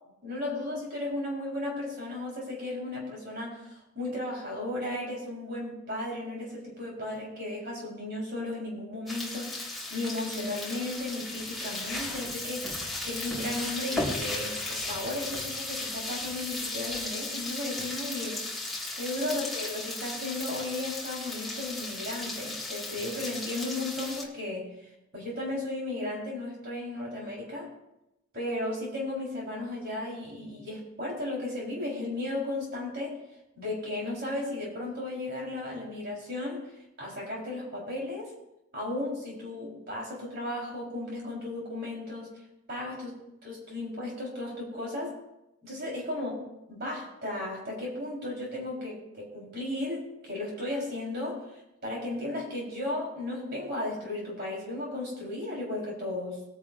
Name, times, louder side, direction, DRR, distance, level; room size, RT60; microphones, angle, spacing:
voice 1, 0.2-12.6 13.0-18.4 19.0-27.7 28.3-33.2 33.6-36.7 37.0-38.3 38.7-42.3 42.7-43.2 43.4-45.1 45.6-46.4 46.7-56.4, left 2 dB, 50° right, -4 dB, 4.1 m, -35 dB
sound 1, 9.1-24.2, left 2 dB, ahead, 1.9 m, -36 dB
20.0 x 9.8 x 2.6 m, 0.91 s
head